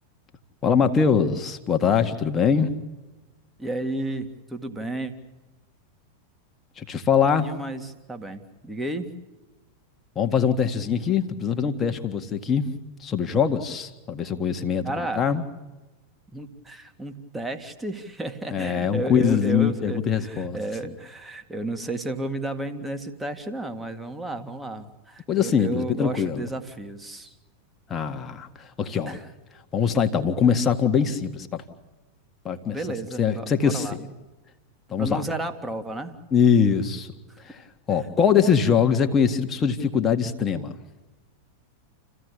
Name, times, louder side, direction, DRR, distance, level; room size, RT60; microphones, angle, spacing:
voice 1, 0.6-2.7 6.8-7.5 10.2-12.7 13.0-15.4 18.5-20.6 20.8-20.9 25.3-26.4 27.9-28.5 28.8-29.2 29.7-31.6 32.5-32.8 33.2-34.1 34.9-35.2 36.3-37.1 37.4-40.7, left 7 dB, 25° left, 7 dB, 1.8 m, -22 dB
voice 2, 3.6-5.1 7.4-9.1 14.8-15.4 16.3-27.3 29.1-29.2 32.7-34.0 35.0-36.2 37.3-37.4 37.9-38.1 38.4-38.6, right 2 dB, 10° right, 6 dB, 2.0 m, -33 dB
29.0 x 15.5 x 8.4 m, 1.2 s
figure-of-eight pair, 90°, 0 cm